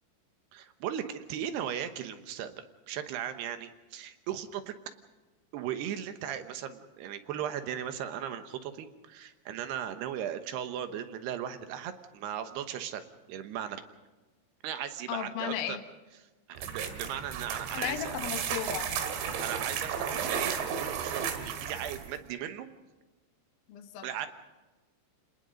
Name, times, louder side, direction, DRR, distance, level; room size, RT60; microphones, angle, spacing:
voice 1, 0.5-4.8 5.5-13.8 14.6-15.8 16.5-18.2 19.2-22.7 24.0-24.3, right 10 dB, 70° right, 9 dB, 3.0 m, -37 dB
voice 2, 15.1-15.8 17.7-18.9 23.7-24.1, left 10 dB, 65° left, 6 dB, 2.7 m, -35 dB
sound 1, 16.6-22.2, right 7 dB, 85° right, 4.1 m, -34 dB
29.5 x 20.0 x 5.2 m, 1.2 s
omnidirectional pair, 5.3 m